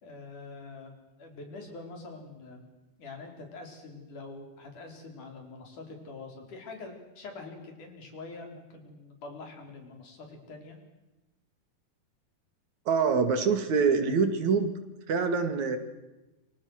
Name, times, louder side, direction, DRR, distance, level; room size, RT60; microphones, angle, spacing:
voice 1, 0.0-0.9 1.2-2.7 3.0-10.8, left 3 dB, 75° left, 3 dB, 6.0 m, -45 dB
voice 2, 12.9-14.7 15.1-15.8, right 5 dB, 65° right, 8 dB, 3.4 m, -25 dB
28.5 x 25.0 x 6.5 m, 1.0 s
omnidirectional pair, 3.6 m